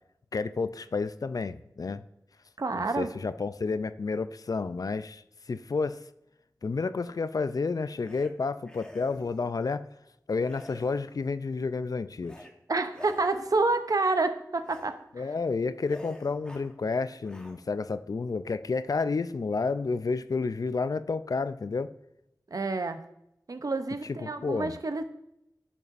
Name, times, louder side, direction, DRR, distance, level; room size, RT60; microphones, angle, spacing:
voice 1, 0.3-2.0 2.7-6.0 6.6-9.9 10.3-12.3 15.1-21.9 24.1-24.7, left 4 dB, 60° left, 13 dB, 0.3 m, -30 dB
voice 2, 2.6-3.1 12.7-15.2 22.5-23.0 23.5-25.0, right 3 dB, 60° right, 9 dB, 0.6 m, -28 dB
sound 1, 8.0-8.3 8.7-9.5 10.4-11.3 12.2-12.5 12.9-13.8 14.6-14.9 15.3-15.4 15.8-16.7 17.2-17.8, left 1 dB, 10° left, 1.0 m, -49 dB
10.5 x 5.4 x 2.5 m, 0.82 s
wide cardioid pair, 50°, 7 cm